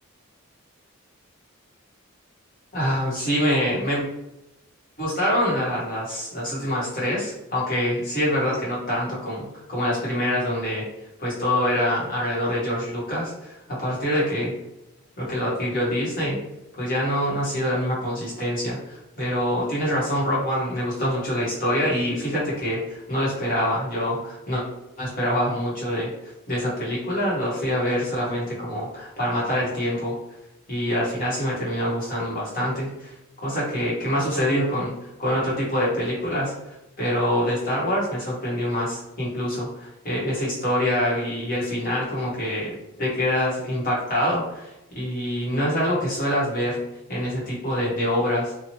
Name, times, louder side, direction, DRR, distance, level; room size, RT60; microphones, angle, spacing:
voice 1, 2.7-4.1 5.0-10.8 11.2-14.5 15.2-16.4 16.8-24.6 25.0-26.1 26.5-30.1 30.7-33.1 33.4-46.8 47.1-48.5, equal, 40° left, -6 dB, 1.1 m, -25 dB
3.0 x 2.3 x 2.8 m, 0.91 s
head